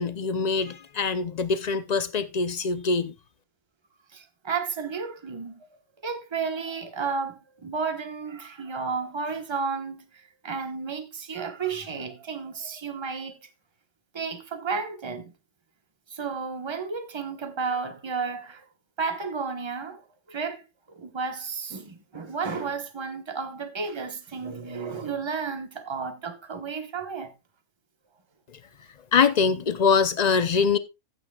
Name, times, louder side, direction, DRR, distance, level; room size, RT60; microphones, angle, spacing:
voice 1, 0.0-3.1 29.1-30.8, left 5 dB, 75° left, 0.3 m, -23 dB
voice 2, 4.1-5.7 6.0-13.4 14.1-15.3 16.1-18.7 19.0-20.0 20.3-20.6 20.9-27.3, right 5 dB, 20° right, 1.1 m, -32 dB
15.5 x 8.8 x 2.3 m
omnidirectional pair, 1.6 m